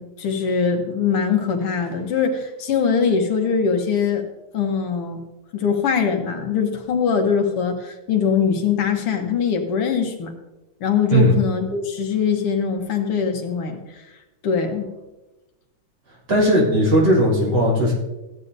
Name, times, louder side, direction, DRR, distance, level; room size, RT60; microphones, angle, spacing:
voice 1, 0.0-4.2 4.5-5.2 5.5-10.3 10.8-13.8 14.4-14.9, left 6 dB, 85° left, 4 dB, 2.1 m, -22 dB
voice 2, 16.3-17.9, equal, 65° right, -6 dB, 4.1 m, -17 dB
15.0 x 8.8 x 2.7 m, 1.1 s
omnidirectional pair, 2.4 m